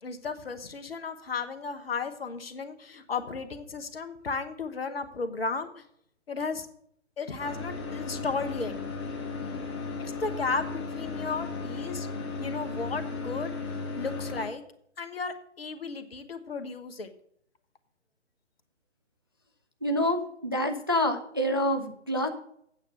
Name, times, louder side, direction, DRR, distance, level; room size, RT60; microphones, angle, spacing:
voice 1, 0.0-5.8 6.3-6.7 7.2-8.7 10.0-12.1 12.4-13.5 14.0-14.6 15.0-17.1, left 4 dB, 55° left, 9 dB, 1.2 m, -34 dB
sound 1, 7.4-14.5, left 4 dB, 20° left, 1.3 m, -35 dB
voice 2, 19.8-22.3, left 1 dB, 20° right, 4 dB, 0.4 m, -27 dB
8.8 x 6.8 x 6.6 m, 0.70 s
figure-of-eight pair, 140°, 36 cm